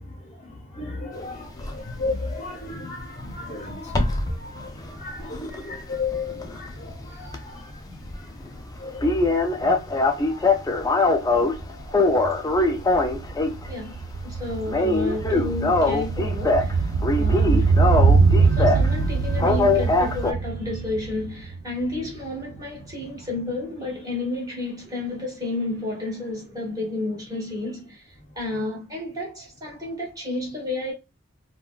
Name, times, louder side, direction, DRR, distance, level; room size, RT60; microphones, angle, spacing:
voice 1, 0.0-12.1 13.1-13.2 17.4-17.5 18.4-18.5, left 3 dB, 30° left, 0.7 m, -35 dB
sound 1, 1.6-1.8 3.9-4.3 4.8-6.9 7.2-7.4 7.7-7.8 8.1-8.2 8.5-8.6 9.0-11.6 11.9-13.7 14.0-14.3 14.6-16.7 17.0-18.9 19.4-20.3, left 2 dB, 15° left, 0.3 m, -22 dB
sound 2, 11.6-11.7 11.9-22.3 22.6-22.7, right 4 dB, 80° right, 0.3 m, -23 dB
voice 2, 13.7-16.9 17.2-17.8 18.5-30.9, left 2 dB, 20° right, 1.4 m, -31 dB
3.8 x 2.2 x 2.3 m
head